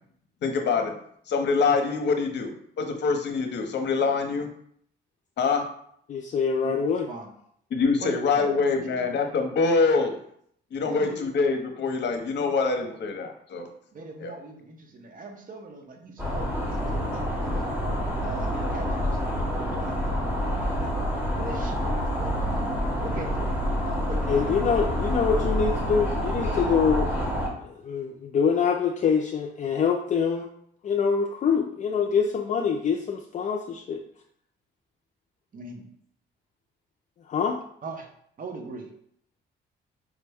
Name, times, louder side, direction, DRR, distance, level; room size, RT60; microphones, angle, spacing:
voice 1, 0.4-0.9 1.3-2.5 2.8-4.5 5.4-5.6 7.7-10.1 10.7-13.7 14.2-14.3, left 4 dB, 60° left, 5 dB, 0.7 m, -25 dB
voice 2, 6.1-7.1 24.3-27.1 27.6-30.5 30.8-34.0 37.3-37.6, left 6 dB, 40° left, 2 dB, 0.4 m, -25 dB
voice 3, 6.6-7.3 8.0-9.2 10.8-11.3 12.4-13.0 13.9-17.7 18.2-20.9 21.4-22.7 23.0-23.5 23.9-24.7 35.5-35.8 37.8-38.1 38.4-38.9, right 3 dB, 45° right, 3 dB, 0.8 m, -41 dB
sound 1, 16.2-27.5, equal, 10° right, 1.2 m, -27 dB
4.9 x 2.1 x 3.4 m, 0.67 s
cardioid pair, 90°, 20 cm